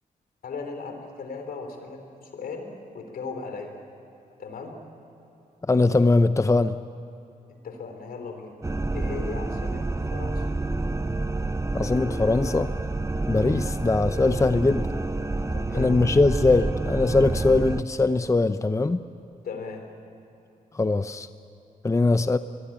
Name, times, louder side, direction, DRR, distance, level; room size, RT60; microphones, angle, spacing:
voice 1, 0.4-3.7 4.4-4.8 7.6-8.6 8.9-10.5 15.5-16.0 19.4-19.8, left 4 dB, 80° left, 5 dB, 3.9 m, -37 dB
voice 2, 5.7-6.8 11.7-12.7 13.3-15.0 15.8-19.0 20.7-21.3 21.8-22.4, left 3 dB, 20° left, 11 dB, 0.7 m, -21 dB
sound 1, 8.6-17.8, right 2 dB, 20° right, 0.9 m, -28 dB
23.5 x 22.0 x 8.9 m, 3.0 s
cardioid pair, 75°, 15 cm